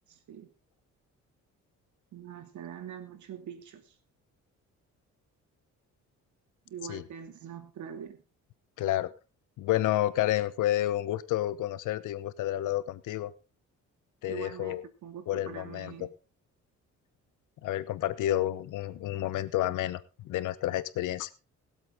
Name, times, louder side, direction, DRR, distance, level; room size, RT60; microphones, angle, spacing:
voice 1, 0.1-0.5 2.1-4.0 6.7-8.2 14.3-16.1, right 8 dB, 70° right, 2.5 m, -43 dB
voice 2, 8.8-9.1 9.6-13.3 14.2-14.8 15.3-15.9 17.6-21.3, left 14 dB, 85° left, 1.0 m, -30 dB
21.0 x 7.9 x 3.6 m
cardioid pair, 90°, 30 cm